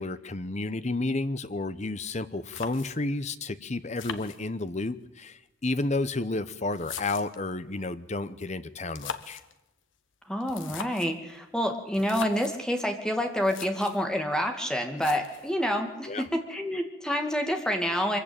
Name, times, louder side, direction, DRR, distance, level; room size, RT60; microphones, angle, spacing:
voice 1, 0.0-9.4 16.1-16.2, left 2 dB, 35° left, 14 dB, 0.9 m, -31 dB
sound 1, 2.5-3.2 3.9-4.9 5.8-7.5 8.8-9.5 10.4-11.2 11.9-12.6 13.1-13.2 13.4-14.0 15.0-15.6, left 6 dB, 65° left, 1.4 m, -41 dB
voice 2, 10.3-18.2, equal, 5° left, 4 dB, 2.3 m, -28 dB
24.0 x 15.5 x 9.0 m, 0.99 s
head